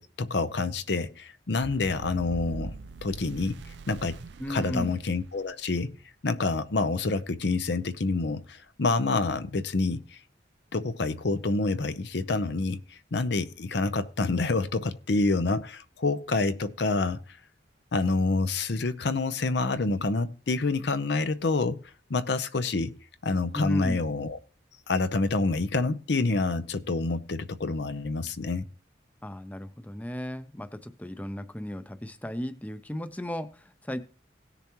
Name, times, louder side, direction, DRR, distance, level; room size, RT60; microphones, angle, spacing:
voice 1, 0.0-2.7 3.0-3.6 3.9-4.2 4.5-5.9 6.2-10.2 10.7-17.2 17.9-21.8 22.1-22.9 23.2-24.4 24.9-28.6, left 3 dB, 65° left, 0.7 m, -27 dB
sound 1, 1.6-5.8, right 3 dB, 70° right, 0.5 m, -43 dB
voice 2, 4.4-5.0 23.5-24.0 29.2-34.0, equal, 10° left, 0.5 m, -35 dB
17.5 x 6.8 x 3.0 m
head